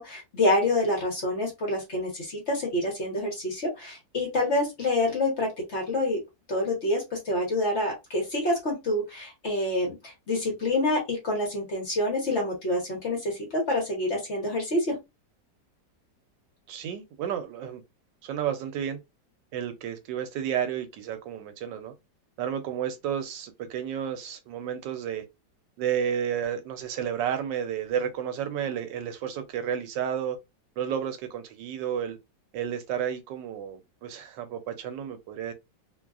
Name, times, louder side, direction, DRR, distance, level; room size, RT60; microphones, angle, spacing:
voice 1, 0.0-6.2 6.5-14.9, left 1 dB, 45° left, 1.1 m, -27 dB
voice 2, 16.7-17.8 18.2-19.0 19.5-21.9 22.4-25.2 25.8-30.4 30.8-32.2 32.5-35.5, right 9 dB, 85° right, 1.3 m, -31 dB
3.0 x 2.3 x 2.3 m
omnidirectional pair, 1.9 m